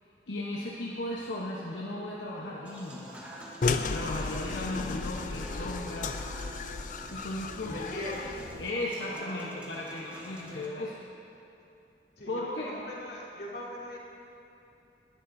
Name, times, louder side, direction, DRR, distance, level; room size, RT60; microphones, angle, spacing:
voice 1, 0.3-3.2 3.9-6.2 7.1-8.1 8.6-11.0 12.3-12.7, left 1 dB, 90° left, -5 dB, 1.1 m, -36 dB
Wind instrument woodwind instrument, 1.7-10.0, equal, 35° right, 1.0 m, -51 dB
Human voice / Acoustic guitar / Piano, 2.6-10.7, right 1 dB, 10° right, 1.2 m, -49 dB
sound 1, 3.6-8.7, left 4 dB, 45° left, 0.4 m, -34 dB
voice 2, 7.6-8.3 9.1-10.1 10.4-10.6 12.2-14.0, left 1 dB, 70° left, -6 dB, 2.6 m, -41 dB
19.5 x 11.0 x 2.7 m, 2.8 s
head